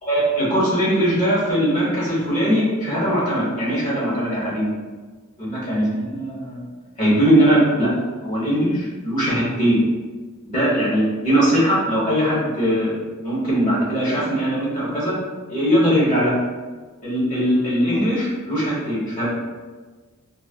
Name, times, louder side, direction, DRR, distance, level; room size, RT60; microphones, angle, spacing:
voice 1, 0.0-4.7 5.4-6.6 7.0-7.9 8.2-9.8 10.4-12.9 13.2-15.2 15.5-16.3 17.0-19.3, equal, 40° left, -8 dB, 1.1 m, -20 dB
4.0 x 2.0 x 2.2 m, 1.4 s
head